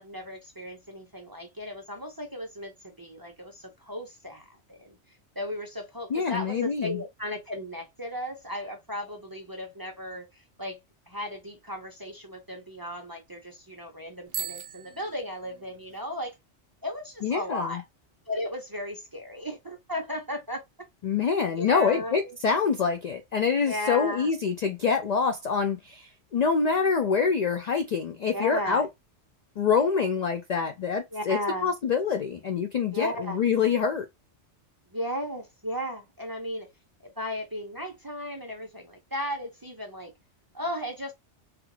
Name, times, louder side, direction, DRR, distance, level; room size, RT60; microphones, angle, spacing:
voice 1, 0.0-4.9 5.4-10.8 11.1-16.4 16.8-17.8 18.3-20.6 21.6-22.4 23.6-24.3 28.3-28.9 31.1-31.7 32.9-33.4 34.9-36.7 37.2-40.1 40.5-41.1, left 1 dB, 25° right, 0.5 m, -35 dB
voice 2, 6.1-7.0 17.2-17.8 21.0-28.9 29.6-34.1, left 5 dB, 70° left, 0.4 m, -26 dB
Bicycle bell, 14.3-16.0, right 9 dB, 60° right, 0.8 m, -39 dB
3.2 x 2.4 x 3.1 m
omnidirectional pair, 1.2 m